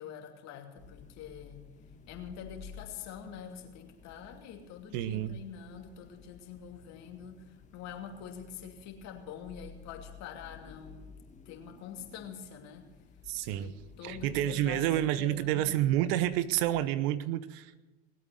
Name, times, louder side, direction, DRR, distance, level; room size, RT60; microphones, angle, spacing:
voice 1, 0.0-1.6 2.1-7.4 7.7-11.1 11.5-12.9 13.5-14.8 15.2-15.7, left 7 dB, 55° left, 3 dB, 2.7 m, -45 dB
sound 1, 0.8-16.9, left 6 dB, 20° left, 1.7 m, -54 dB
voice 2, 4.9-5.4 13.3-13.7 14.0-17.8, right 13 dB, 65° right, 15 dB, 0.9 m, -29 dB
19.5 x 8.5 x 7.9 m, 1.2 s
hypercardioid pair, 95°, 33 cm